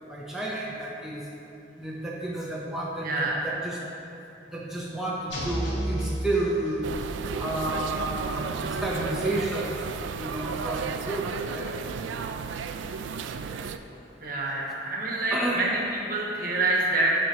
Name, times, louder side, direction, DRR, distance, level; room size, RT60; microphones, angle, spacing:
voice 1, 0.1-1.3 1.8-3.8 4.5-6.9 7.3-11.7 15.3-15.7, right 1 dB, 5° right, -5 dB, 0.5 m, -31 dB
voice 2, 3.0-3.4 14.2-17.2, right 2 dB, 50° right, -2 dB, 1.0 m, -27 dB
sound 1, 5.3-7.2, equal, 75° left, 1.3 m, -32 dB
sound 2, 6.8-13.8, right 5 dB, 85° right, 0.3 m, -33 dB
10.5 x 4.3 x 2.8 m, 2.9 s
head